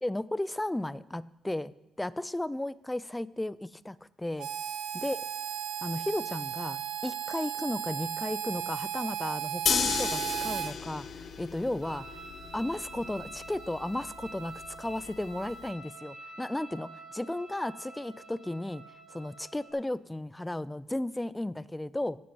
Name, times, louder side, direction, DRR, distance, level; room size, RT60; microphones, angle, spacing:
voice 1, 0.0-1.7 2.0-4.5 4.9-5.2 5.8-11.1 11.4-12.1 12.5-18.8 19.1-22.2, left 1 dB, 10° left, 19 dB, 0.3 m, -34 dB
Harmonica, 4.4-10.7, right 11 dB, 80° right, 0.7 m, -35 dB
sound 1, 9.7-15.7, left 6 dB, 55° left, 0.6 m, -35 dB
sound 2, 11.8-19.7, right 3 dB, 40° right, 3.2 m, -47 dB
9.5 x 8.3 x 5.7 m, 0.98 s
cardioid pair, 90°, 0 cm